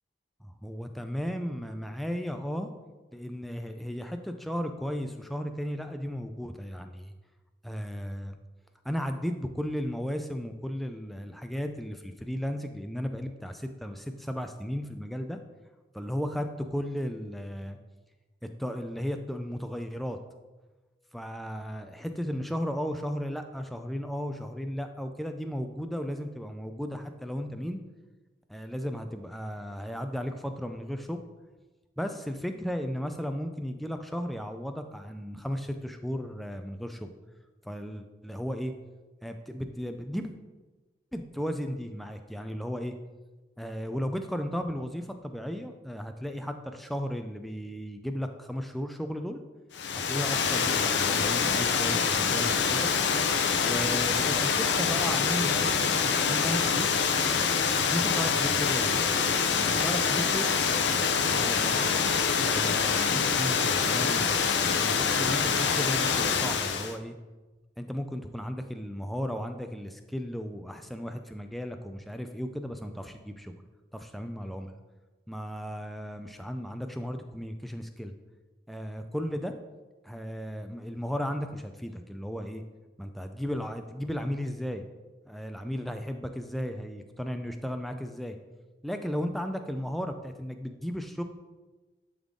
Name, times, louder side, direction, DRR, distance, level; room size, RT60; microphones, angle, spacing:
voice 1, 0.4-2.7 3.1-7.1 7.6-8.4 8.8-15.4 15.9-17.8 18.6-20.2 21.1-27.8 28.5-31.2 32.0-37.1 37.6-38.7 39.2-40.3 41.1-42.9 43.6-49.4 50.0-52.9 53.6-56.9 57.8-59.1 59.6-60.5 60.9-61.8 62.4-67.2 67.8-73.5 73.9-74.8 75.3-78.1 78.7-79.5 80.0-82.6 83.0-84.9 85.3-88.4 88.8-91.2, equal, ahead, 6 dB, 0.4 m, -35 dB
Water, 49.7-66.9, left 6 dB, 70° left, 0.6 m, -25 dB
10.5 x 3.8 x 3.7 m, 1.2 s
head